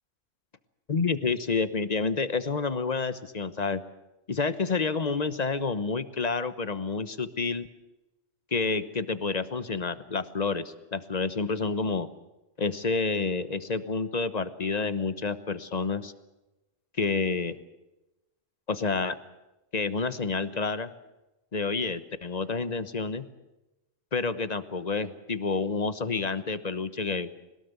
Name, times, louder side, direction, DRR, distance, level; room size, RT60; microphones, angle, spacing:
voice 1, 0.9-3.8 4.3-7.7 8.5-12.1 12.6-16.1 17.0-17.6 18.7-19.2 19.7-20.9 21.5-23.2 24.1-27.3, left 4 dB, 35° left, 13 dB, 1.1 m, -29 dB
22.0 x 20.0 x 8.2 m, 1.0 s
omnidirectional pair, 1.3 m